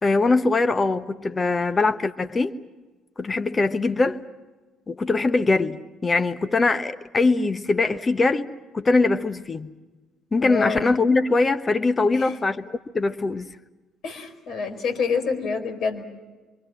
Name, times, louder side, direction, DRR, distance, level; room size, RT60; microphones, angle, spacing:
voice 1, 0.0-2.5 3.2-4.2 4.9-8.5 8.7-9.7 10.3-13.5, left 3 dB, 30° left, 1.1 m, -22 dB
voice 2, 10.4-10.9 12.1-12.3 14.0-16.0, left 5 dB, 60° left, 5.0 m, -27 dB
27.5 x 25.5 x 6.3 m
hypercardioid pair, 50°, 0 cm